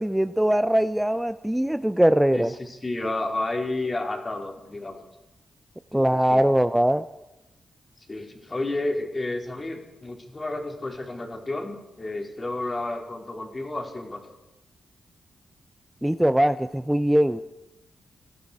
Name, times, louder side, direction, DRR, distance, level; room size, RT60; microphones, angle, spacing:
voice 1, 0.0-2.5 5.9-7.0 16.0-17.4, right 1 dB, 5° right, 12 dB, 0.6 m, -21 dB
voice 2, 2.3-5.0 5.9-6.4 8.1-14.3, left 2 dB, 35° left, 1 dB, 3.5 m, -31 dB
18.0 x 12.5 x 4.9 m, 0.96 s
supercardioid pair, 40°, 0 cm